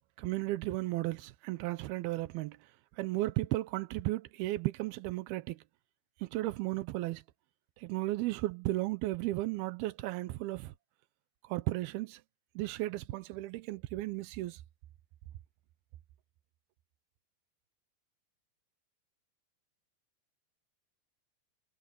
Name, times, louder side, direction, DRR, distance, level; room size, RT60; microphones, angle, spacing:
voice 1, 0.2-2.6 3.0-5.6 6.2-7.2 7.8-10.7 11.5-12.2 12.6-14.6, right 18 dB, 75° right, 2.5 m, -34 dB
omnidirectional pair, 5.0 m